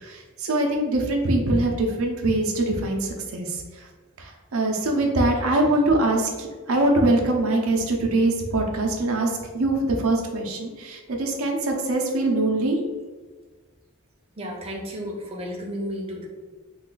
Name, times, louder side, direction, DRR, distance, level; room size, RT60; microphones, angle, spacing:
voice 1, 0.0-3.6 4.2-12.8, right 2 dB, 85° right, 1 dB, 0.6 m, -23 dB
voice 2, 14.4-16.3, equal, 30° right, -1 dB, 0.6 m, -32 dB
3.2 x 2.3 x 3.8 m, 1.4 s
head